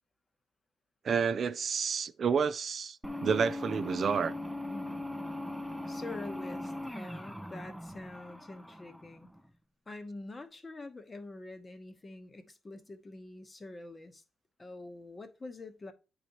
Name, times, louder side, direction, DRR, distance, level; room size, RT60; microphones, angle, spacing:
voice 1, 1.0-4.3, right 6 dB, 50° right, 0.4 m, -30 dB
sound 1, 3.0-9.4, left 1 dB, ahead, 0.5 m, -40 dB
voice 2, 4.6-5.0 5.9-9.3 9.9-14.2 14.6-15.9, left 2 dB, 25° left, 1.0 m, -46 dB
9.0 x 4.0 x 2.9 m
cardioid pair, 90°, 0 cm